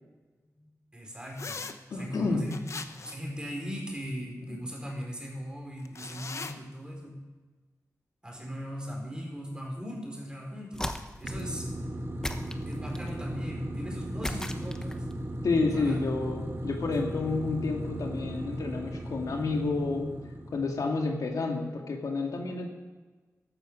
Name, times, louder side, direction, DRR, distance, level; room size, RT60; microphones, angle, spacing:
voice 1, 0.9-1.6 1.9-2.6 3.0-7.2 8.2-10.9 11.2-11.8 12.7-15.0 15.7-16.0, equal, 15° right, 0 dB, 4.4 m, -39 dB
sound 1, 1.4-1.7 2.5-3.3 5.9-6.5, left 4 dB, 55° left, 0.9 m, -39 dB
voice 2, 1.9-2.6 4.5-4.6 15.4-20.2 20.5-22.7, left 3 dB, 85° left, 2 dB, 2.0 m, -30 dB
sound 2, 10.7-11.5 12.2-13.2 14.2-15.1, left 1 dB, 10° left, 0.9 m, -37 dB
sound 3, 11.2-21.0, right 1 dB, 45° right, 2.0 m, -37 dB
14.5 x 12.5 x 5.2 m, 1.3 s
wide cardioid pair, 105°, 6 cm